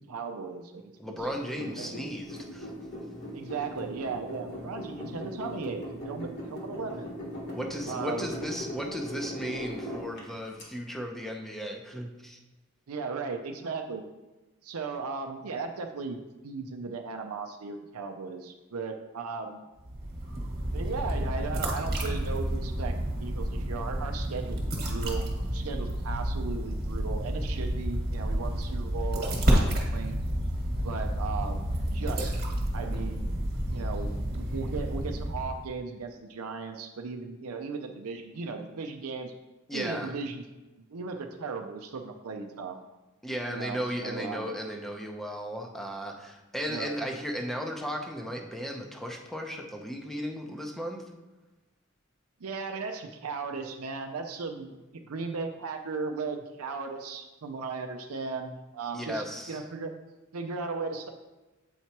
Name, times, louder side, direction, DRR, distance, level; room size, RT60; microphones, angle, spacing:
voice 1, 0.1-1.3 1.6-2.1 3.3-7.1 7.9-8.4 12.9-14.0 14.6-19.7 20.7-25.2 25.5-30.2 30.8-32.4 32.7-33.3 33.7-39.3 39.7-40.4 40.9-42.8 43.5-44.5 46.7-46.9 52.4-59.9 60.3-61.1, right 4 dB, 85° right, 5 dB, 0.5 m, -37 dB
voice 2, 1.0-2.7 7.5-12.4 39.7-40.1 43.2-51.0 58.9-59.6, equal, ahead, 2 dB, 0.6 m, -35 dB
sound 1, 1.2-10.6, left 1 dB, 55° left, 1.6 m, -39 dB
sound 2, 19.8-35.7, equal, 50° right, 1.4 m, -30 dB
8.1 x 4.5 x 2.9 m, 1.1 s
head